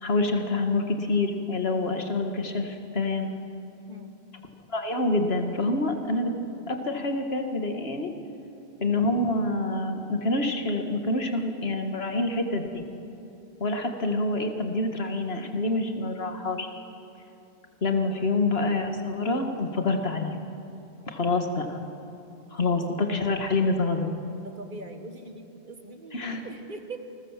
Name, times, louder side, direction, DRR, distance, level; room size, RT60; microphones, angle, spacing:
voice 1, 0.0-3.3 4.7-6.3 6.7-8.1 8.8-12.8 13.6-16.7 17.8-20.4 21.1-21.8 22.5-24.1 26.1-26.5, left 2 dB, 75° left, 4 dB, 2.1 m, -27 dB
voice 2, 24.4-27.0, right 2 dB, 50° right, 6 dB, 1.7 m, -42 dB
28.0 x 21.0 x 7.5 m, 2.8 s
omnidirectional pair, 1.0 m